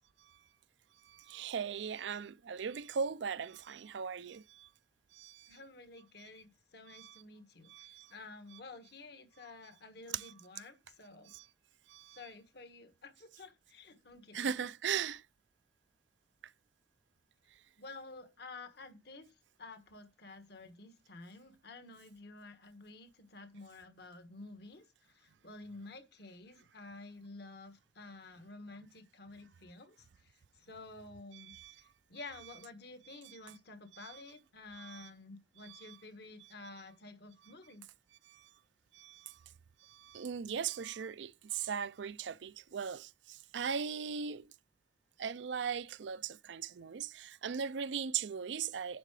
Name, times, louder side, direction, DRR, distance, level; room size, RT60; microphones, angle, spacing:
voice 1, 1.1-4.7 5.1-5.5 6.9-7.2 7.7-8.1 10.1-10.3 11.3-11.5 11.9-12.2 14.3-15.2 31.3-31.8 33.3-33.4 34.0-34.2 34.7-35.1 35.6-36.0 38.9-39.3 39.8-44.5 45.2-49.0, right 7 dB, 70° right, 0.5 m, -39 dB
voice 2, 5.5-11.3 12.1-14.6 17.8-37.8, left 3 dB, 60° left, 1.4 m, -51 dB
10.5 x 3.8 x 4.8 m
head